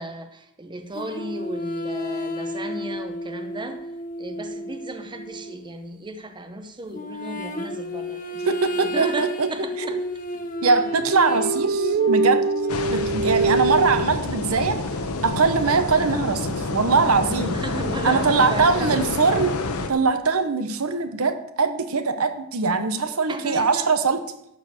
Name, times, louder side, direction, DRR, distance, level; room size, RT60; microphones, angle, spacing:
voice 1, 0.0-3.9 4.2-10.0 10.3-10.4 17.5-19.0 23.3-24.0, right 2 dB, 20° right, 7 dB, 0.9 m, -34 dB
sound 1, 0.9-6.0 6.9-12.8, left 1 dB, 40° left, 1.0 m, -32 dB
voice 2, 8.5-9.5 9.8-9.9 10.6-12.4 12.9-14.8 15.2-17.6 18.0-19.5 19.9-24.2, right 4 dB, 80° right, 9 dB, 1.0 m, -22 dB
sound 2, 10.8-14.1, right 3 dB, 55° right, 0.4 m, -23 dB
sound 3, 12.7-19.9, left 3 dB, 85° left, 1.0 m, -28 dB
12.0 x 4.6 x 8.1 m, 0.77 s
head